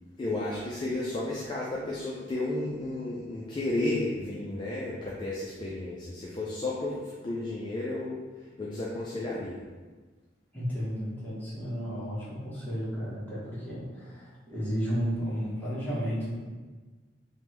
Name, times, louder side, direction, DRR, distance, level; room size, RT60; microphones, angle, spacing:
voice 1, 0.2-9.6, left 2 dB, 25° left, -5 dB, 0.3 m, -33 dB
voice 2, 10.5-16.3, equal, 10° left, -10 dB, 1.0 m, -33 dB
3.3 x 2.1 x 3.0 m, 1.3 s
head